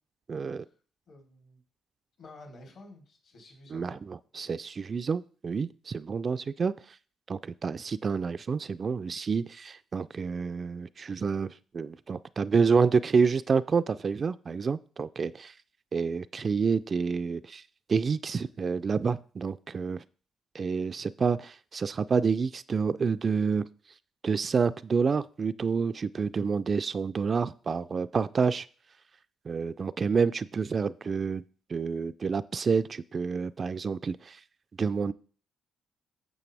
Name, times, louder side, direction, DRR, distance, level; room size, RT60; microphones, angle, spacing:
voice 1, 0.3-0.6 3.7-6.7 7.3-15.5 15.9-17.6 17.9-20.0 20.5-23.7 24.2-28.7 29.5-31.4 31.7-34.4 34.8-35.1, right 5 dB, 40° right, 0.3 m, -28 dB
voice 2, 1.1-1.6 2.2-4.0, left 2 dB, 65° left, 3.5 m, -50 dB
8.3 x 7.0 x 3.4 m
cardioid pair, 90°, 0 cm